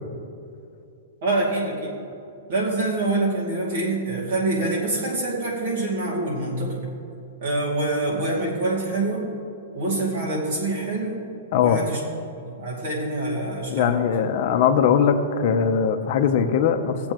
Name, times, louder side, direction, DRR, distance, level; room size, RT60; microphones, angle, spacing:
voice 1, 1.2-1.9 2.5-6.9 7.4-9.3 9.7-11.2 11.5-12.0 12.6-14.0, right 2 dB, 50° right, -3 dB, 2.4 m, -25 dB
voice 2, 13.7-17.1, left 7 dB, 40° left, 7 dB, 0.7 m, -20 dB
17.0 x 7.7 x 3.0 m, 2.7 s
supercardioid pair, 175°, 0 cm